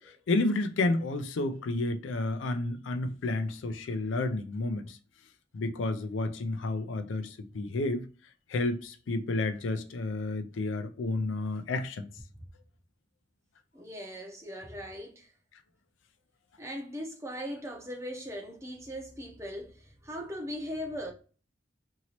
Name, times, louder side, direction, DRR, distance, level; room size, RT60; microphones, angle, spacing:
voice 1, 0.0-5.0 5.5-8.1 8.5-12.1, left 2 dB, 80° left, 0.4 m, -31 dB
voice 2, 13.7-15.3 16.6-21.1, equal, 15° right, 0.6 m, -39 dB
2.9 x 2.8 x 2.8 m
head